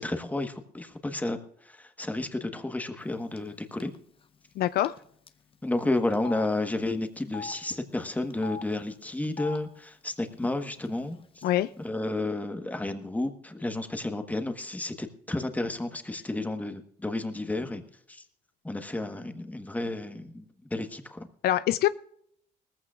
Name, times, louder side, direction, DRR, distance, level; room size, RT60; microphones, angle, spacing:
voice 1, 0.0-1.4 1.6-3.9 5.6-11.4 11.8-17.8 18.1-18.2 18.6-21.3, left 2 dB, 10° left, 1.3 m, -32 dB
Telephone, 3.4-3.5 3.8-4.0 4.8-5.0 5.3-5.4 6.1-6.5 7.2-7.5 8.3-8.6 9.2-9.6 10.4-10.5 10.8-11.5, left 6 dB, 30° left, 1.0 m, -40 dB
voice 2, 4.6-4.9 11.4-11.7 21.4-21.9, left 13 dB, 65° left, 0.4 m, -24 dB
19.5 x 15.0 x 2.5 m
cardioid pair, 110°, 17 cm